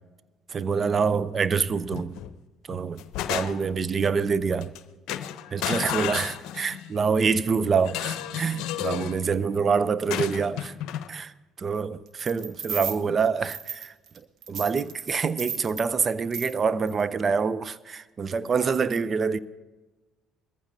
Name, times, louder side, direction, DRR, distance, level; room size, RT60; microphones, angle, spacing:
voice 1, 0.5-2.2 2.7-3.0 3.3-4.7 5.5-10.7 11.1-11.3 11.6-13.9 14.5-19.4, right 5 dB, 40° right, 0.6 m, -26 dB
sound 1, 1.9-2.3 2.7-3.8 4.6-4.8 5.1-6.9 7.8-9.2 10.1-11.1, left 11 dB, 70° left, 0.7 m, -32 dB
sound 2, 12.2-13.0 13.4-14.2 14.4-15.9 16.3-16.6 16.9-17.0, right 7 dB, 55° right, 1.5 m, -35 dB
22.0 x 14.5 x 2.8 m
hypercardioid pair, 65°, 0 cm